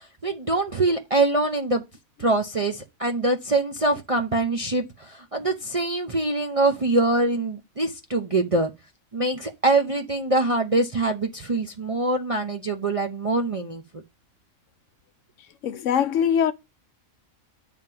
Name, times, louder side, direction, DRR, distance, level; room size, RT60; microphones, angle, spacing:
voice 1, 0.0-1.8 2.2-8.7 9.1-14.0, right 2 dB, 40° right, 0.5 m, -24 dB
voice 2, 15.6-16.5, left 8 dB, 70° left, 0.9 m, -22 dB
9.0 x 3.6 x 5.7 m
omnidirectional pair, 1.4 m